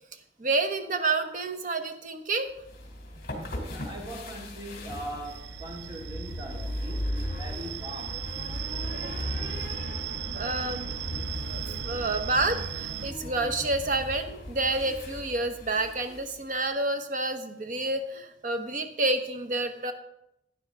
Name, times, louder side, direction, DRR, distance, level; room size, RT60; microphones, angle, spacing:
voice 1, 0.4-2.5 3.3-3.6 8.9-9.3 10.3-10.9 11.5-19.9, right 2 dB, 45° right, 8 dB, 0.9 m, -29 dB
sound 1, 2.6-16.4, left 1 dB, 55° left, 2.3 m, -37 dB
voice 2, 3.7-8.1, right 1 dB, 25° right, -1 dB, 2.1 m, -41 dB
sound 2, 5.2-13.1, right 12 dB, 85° right, 0.4 m, -38 dB
12.0 x 9.7 x 3.5 m, 0.80 s
head